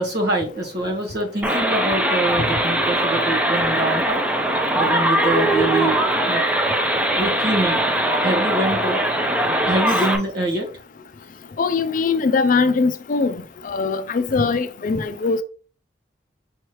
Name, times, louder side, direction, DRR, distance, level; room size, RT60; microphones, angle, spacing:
voice 1, 0.0-4.3 4.7-6.4 7.2-7.8 8.2-9.0 9.6-10.6, right 1 dB, 65° right, 1.4 m, -24 dB
sound 1, 1.4-10.2, right 1 dB, 10° right, 0.6 m, -21 dB
voice 2, 11.6-13.3 13.6-15.4, left 4 dB, 50° left, 0.4 m, -21 dB
5.6 x 3.0 x 3.0 m
head